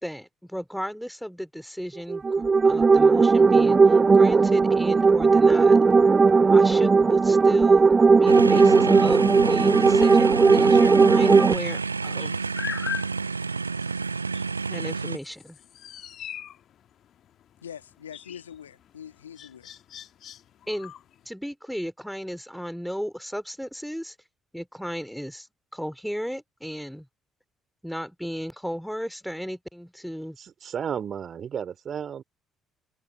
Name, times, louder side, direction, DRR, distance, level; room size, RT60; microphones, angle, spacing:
voice 1, 0.0-5.8 6.5-7.9 8.2-12.4 14.7-15.6 20.7-20.9 21.3-24.2 24.5-25.5 25.7-27.1 27.8-30.4, equal, ahead, 2.5 m, -34 dB
sound 1, 2.1-11.5, right 4 dB, 30° right, 0.4 m, -17 dB
sound 2, 8.3-15.2, right 4 dB, 85° right, 0.7 m, -30 dB
sound 3, 9.1-21.3, left 10 dB, 50° left, 1.9 m, -42 dB
voice 2, 17.6-19.7, left 9 dB, 80° left, 1.6 m, -43 dB
voice 3, 30.4-32.2, right 8 dB, 45° right, 4.5 m, -33 dB
figure-of-eight pair, 45°, 0 cm